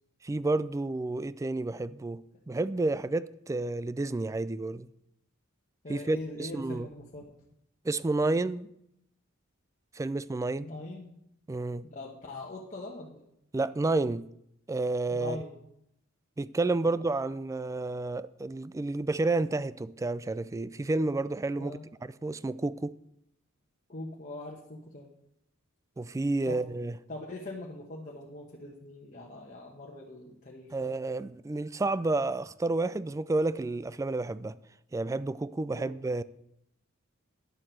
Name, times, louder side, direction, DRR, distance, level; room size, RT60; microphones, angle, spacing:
voice 1, 0.2-2.2 2.5-4.9 5.9-6.9 7.8-8.7 10.0-10.7 11.5-11.9 13.5-14.2 14.7-15.4 16.4-21.8 22.2-22.9 26.0-26.9 30.7-34.6 34.9-36.2, right 2 dB, 15° right, 0.3 m, -30 dB
voice 2, 5.8-7.3 10.6-11.2 11.8-13.2 15.1-15.5 16.9-17.0 21.6-21.8 23.9-25.1 26.4-26.7 27.1-31.0 35.7-36.0, left 2 dB, 40° left, 1.2 m, -42 dB
10.5 x 7.6 x 6.4 m
head